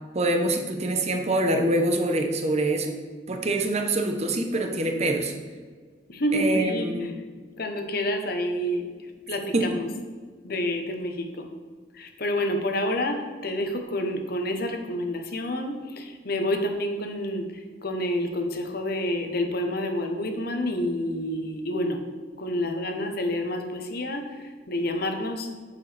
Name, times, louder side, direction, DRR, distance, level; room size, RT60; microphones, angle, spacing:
voice 1, 0.1-3.0 3.3-5.3 6.3-7.1 9.5-9.7, right 1 dB, 40° right, 4 dB, 0.9 m, -25 dB
voice 2, 6.1-7.1 7.6-8.9 9.3-9.9 10.4-11.5 12.0-17.4 17.8-22.0 22.4-24.2 24.7-25.5, left 1 dB, 60° left, 5 dB, 1.0 m, -28 dB
9.1 x 6.9 x 3.4 m, 1.5 s
head